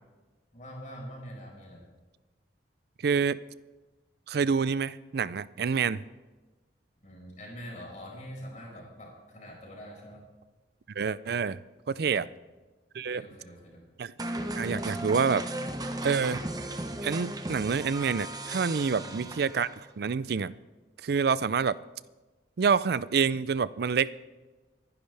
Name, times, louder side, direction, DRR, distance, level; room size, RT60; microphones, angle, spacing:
voice 1, 0.5-1.8 7.0-10.3 11.9-12.3 13.1-13.9 18.9-19.3, equal, 45° left, -2 dB, 5.0 m, -45 dB
voice 2, 3.0-3.4 4.3-6.0 11.0-11.6 11.9-12.3 12.9-13.2 14.0-14.1 14.6-15.5 16.0-16.4 17.0-19.7 20.0-20.5 21.0-21.8 22.6-24.4, right 6 dB, 60° right, 18 dB, 0.4 m, -27 dB
sound 1, 14.2-19.9, right 1 dB, 20° right, 0.9 m, -36 dB
25.0 x 11.0 x 3.4 m, 1.2 s
head